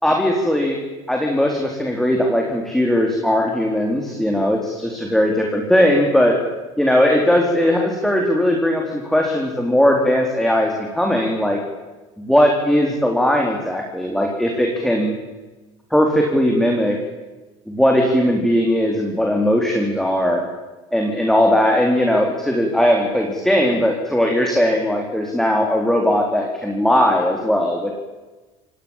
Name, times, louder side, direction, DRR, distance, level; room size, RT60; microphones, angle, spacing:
voice 1, 0.0-0.8 1.1-6.4 6.8-11.6 12.2-15.1 15.9-17.0 17.7-20.4 20.9-28.0, equal, ahead, 1 dB, 4.1 m, -18 dB
28.5 x 17.5 x 7.5 m, 1.2 s
supercardioid pair, 105°, 15 cm